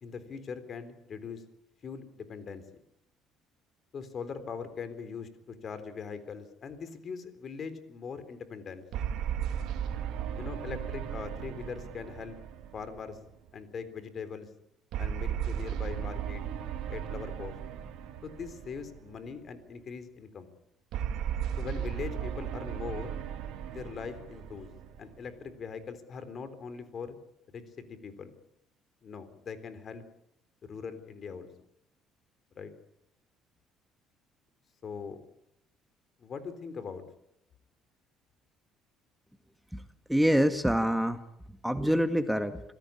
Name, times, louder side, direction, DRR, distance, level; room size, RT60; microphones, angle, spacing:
voice 1, 0.0-1.4 1.8-2.6 3.9-8.9 10.4-12.4 12.7-13.2 13.5-14.5 15.0-16.4 16.9-17.6 18.2-20.5 21.6-23.2 23.7-24.7 25.0-27.2 27.5-28.3 29.0-30.0 30.6-31.5 32.6-32.7 34.8-35.2 36.2-37.0, left 6 dB, 50° left, 11 dB, 3.8 m, -41 dB
sound 1, 8.9-13.5 14.9-19.3 20.9-25.5, right 9 dB, 70° right, 2.1 m, -36 dB
voice 2, 40.1-41.2 41.6-42.6, equal, ahead, 8 dB, 1.7 m, -25 dB
26.5 x 16.5 x 8.6 m, 0.83 s
supercardioid pair, 65°, 0 cm